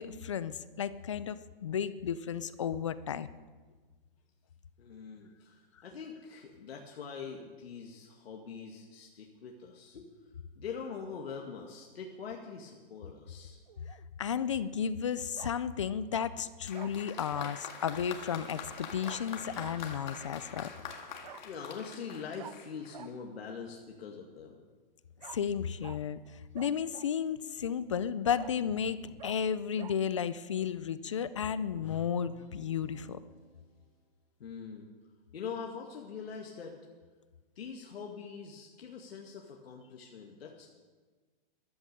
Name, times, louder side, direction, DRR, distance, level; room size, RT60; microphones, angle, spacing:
voice 1, 0.0-3.3 14.2-20.7 25.3-26.2 26.5-33.2, left 8 dB, 30° left, 15 dB, 0.4 m, -33 dB
voice 2, 4.8-13.6 21.4-24.6 34.4-34.9 35.3-36.8 37.6-40.7, left 6 dB, 85° left, 1 dB, 2.1 m, -43 dB
Bark, 13.7-14.0 15.4-15.6 16.1-16.3 16.7-16.9 17.3-17.6 19.0-19.2 19.6-19.8 21.2-21.4 22.4-22.5 22.9-23.1 25.2-25.4 25.8-26.0 26.5-27.2 27.7-27.8 28.4-28.6 29.2-29.4 29.8-30.0, right 10 dB, 45° right, 0.5 m, -48 dB
Applause, 16.6-23.1, left 6 dB, 50° left, 1.9 m, -45 dB
sound 1, 32.4-34.0, right 4 dB, 25° right, 3.7 m, -60 dB
14.0 x 12.0 x 6.7 m, 1.4 s
hypercardioid pair, 175°, 30 cm